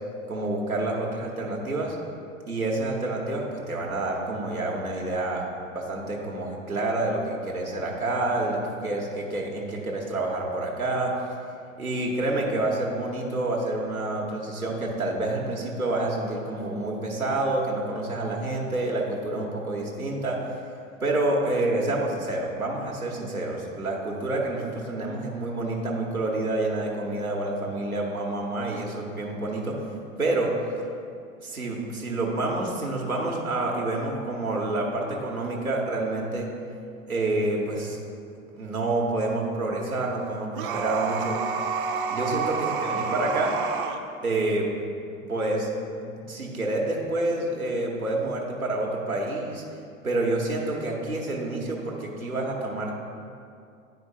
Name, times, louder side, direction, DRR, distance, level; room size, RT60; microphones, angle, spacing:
voice 1, 0.3-2.0 2.5-5.4 5.7-11.1 11.8-20.6 21.0-29.8 30.2-30.5 31.4-36.5 37.1-38.0 38.5-41.4 42.1-43.5 44.2-44.7 45.3-45.7 45.9-49.6 50.0-52.9, right 2 dB, 90° right, -2 dB, 0.9 m, -28 dB
sound 1, 40.5-44.0, right 5 dB, 40° right, 0.5 m, -28 dB
10.0 x 4.4 x 2.7 m, 2.4 s
figure-of-eight pair, 95°, 42 cm